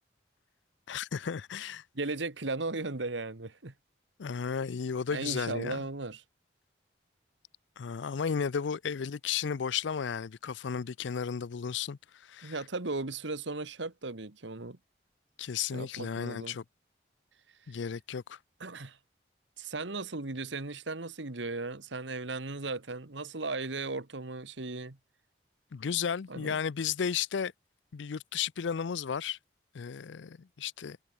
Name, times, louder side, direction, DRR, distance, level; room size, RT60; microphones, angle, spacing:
voice 1, 0.9-1.8 4.2-5.8 7.8-12.6 15.4-16.6 17.7-18.4 25.7-27.5 27.9-29.4 29.7-31.0, left 7 dB, 80° left, 0.5 m, -34 dB
voice 2, 1.9-3.7 5.1-6.2 12.4-14.8 15.7-16.6 18.6-19.0 19.6-25.0 26.3-26.6, right 3 dB, 85° right, 1.6 m, -36 dB
head